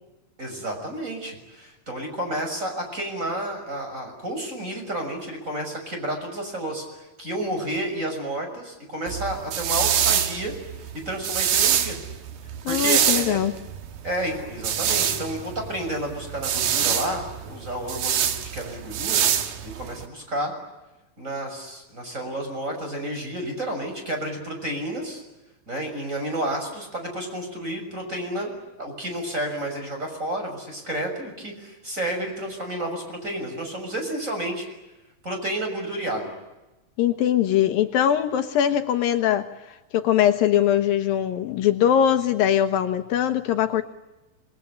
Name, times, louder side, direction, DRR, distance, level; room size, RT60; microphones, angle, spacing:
voice 1, 0.4-10.5 11.0-12.0 12.7-13.4 14.0-18.2 18.5-19.2 19.6-20.5 21.2-25.2 25.7-34.7 35.2-36.3, right 1 dB, 20° right, 3 dB, 6.7 m, -31 dB
sound 1, 9.1-20.0, right 9 dB, 75° right, 3.4 m, -25 dB
voice 2, 12.7-13.5 37.0-39.5 39.9-43.8, left 10 dB, 75° left, 8 dB, 2.8 m, -21 dB
28.0 x 20.5 x 10.0 m, 1.0 s
omnidirectional pair, 4.3 m